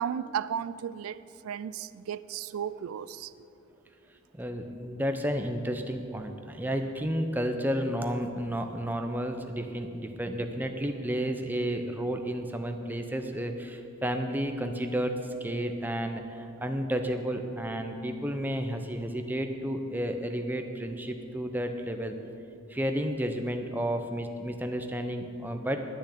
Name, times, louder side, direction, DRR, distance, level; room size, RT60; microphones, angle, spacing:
voice 1, 0.0-3.3, right 8 dB, 85° right, 0.3 m, -34 dB
voice 2, 4.3-15.1 15.4-22.2 22.7-25.9, equal, 10° right, 0.6 m, -32 dB
10.0 x 6.2 x 8.4 m
head